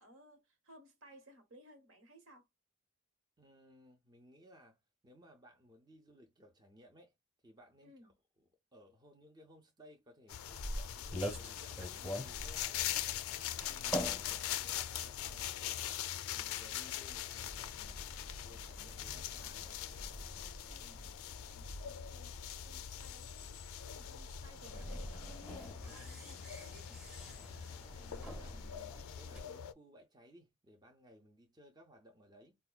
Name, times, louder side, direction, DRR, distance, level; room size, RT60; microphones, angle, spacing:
voice 1, 0.0-2.5 7.8-8.1 13.6-14.0 20.6-21.1 21.5-23.5 23.8-27.0, right 1 dB, 75° right, 1.2 m, -60 dB
voice 2, 3.4-7.1 7.4-8.1 8.7-12.7 13.2-13.7 14.1-18.0 18.4-19.8 23.9-24.1 28.0-32.6, equal, 20° right, 0.5 m, -61 dB
sound 1, 10.3-29.7, left 11 dB, 75° left, 0.3 m, -42 dB
sound 2, 10.3-29.4, equal, 5° right, 0.9 m, -46 dB
4.6 x 2.2 x 2.3 m
head